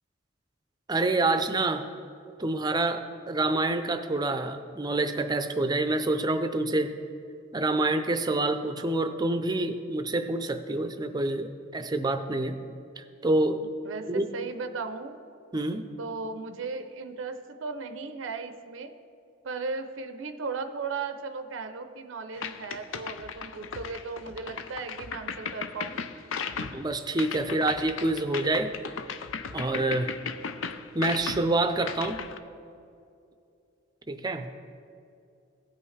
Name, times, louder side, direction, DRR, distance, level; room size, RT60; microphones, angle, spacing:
voice 1, 0.9-1.8 2.4-6.9 7.5-12.6 13.0-13.7 14.1-14.3 15.5-15.9 26.6-28.7 29.5-30.2 30.9-32.2 34.1-34.5, right 2 dB, 20° right, 8 dB, 0.5 m, -27 dB
voice 2, 13.8-15.2 16.0-18.9 19.4-26.0 27.5-27.7, right 4 dB, 85° right, 9 dB, 0.5 m, -36 dB
sound 1, 22.4-32.4, left 6 dB, 90° left, 0.5 m, -37 dB
16.5 x 5.6 x 3.2 m, 2.5 s
head